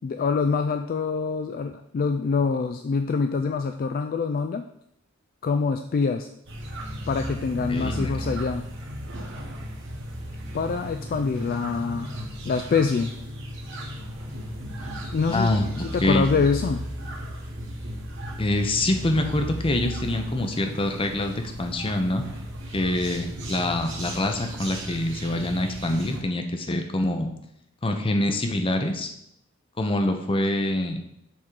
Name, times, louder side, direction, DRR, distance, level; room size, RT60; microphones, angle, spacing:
voice 1, 0.0-4.6 5.4-6.3 7.1-8.6 10.5-12.1 12.4-13.1 15.1-16.9, left 5 dB, 45° left, 7 dB, 0.3 m, -25 dB
sound 1, 6.5-26.2, equal, 60° right, 1.3 m, -35 dB
voice 2, 7.7-8.1 15.3-16.2 18.4-22.3 22.7-27.3 27.8-29.1 29.8-31.0, left 1 dB, 25° left, 5 dB, 0.7 m, -25 dB
7.1 x 3.7 x 4.7 m, 0.76 s
head